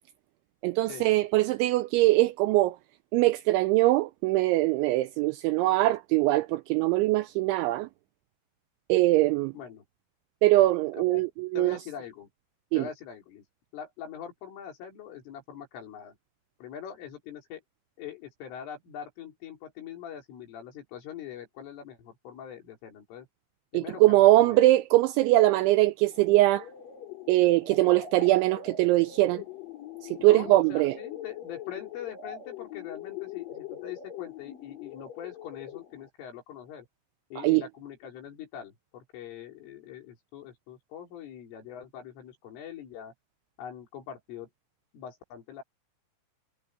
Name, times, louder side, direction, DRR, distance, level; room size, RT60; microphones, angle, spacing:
voice 1, 0.6-2.8 3.1-7.9 8.9-9.5 10.4-11.8 12.7-12.8 23.7-26.7 27.3-29.4 30.2-31.0 37.4-37.6, right 17 dB, 90° right, 2.7 m, -22 dB
voice 2, 9.5-9.8 11.0-11.2 11.5-12.3 12.7-13.4 13.7-16.2 16.6-17.6 18.0-23.3 23.7-24.6 30.2-36.9 37.3-43.1 43.6-44.5 44.9-45.6, left 9 dB, 70° left, 6.5 m, -43 dB
sound 1, 26.1-36.1, left 9 dB, 45° left, 5.3 m, -43 dB
omnidirectional pair, 5.9 m